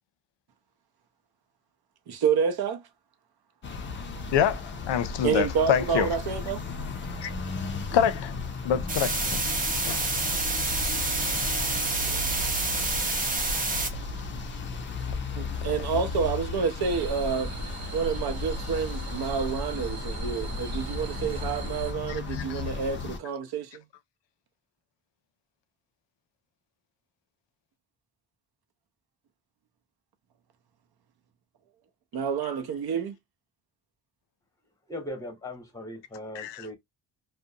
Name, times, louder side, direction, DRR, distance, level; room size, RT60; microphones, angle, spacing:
voice 1, 2.1-2.8 5.2-6.6 15.4-17.5 17.9-23.8 32.1-33.2, right 6 dB, 60° right, 0.6 m, -28 dB
sound 1, 3.6-23.2, left 3 dB, 30° left, 0.4 m, -35 dB
voice 2, 4.3-6.1 7.2-7.3 7.9-8.4 8.6-9.4 9.8-10.1 12.4-12.8 22.1-22.6 36.3-36.6, left 9 dB, 90° left, 0.6 m, -27 dB
sound 2, 8.9-13.9, right 2 dB, 20° right, 0.5 m, -28 dB
sound 3, 16.8-21.9, right 1 dB, 40° right, 0.9 m, -36 dB
voice 3, 34.9-36.7, left 1 dB, 10° left, 0.9 m, -38 dB
2.5 x 2.1 x 2.6 m
wide cardioid pair, 160°, 42 cm